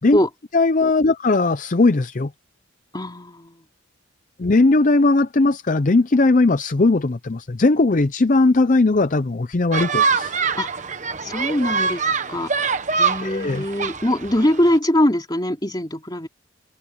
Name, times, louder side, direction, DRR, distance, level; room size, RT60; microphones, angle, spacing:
voice 1, 0.5-2.3 4.4-10.3 13.2-13.6, left 3 dB, 40° left, 0.5 m, -18 dB
voice 2, 2.9-3.6 10.6-10.7 11.2-16.3, left 1 dB, 20° left, 3.1 m, -22 dB
sound 1, 9.7-14.8, right 5 dB, 35° right, 1.1 m, -24 dB
open air
head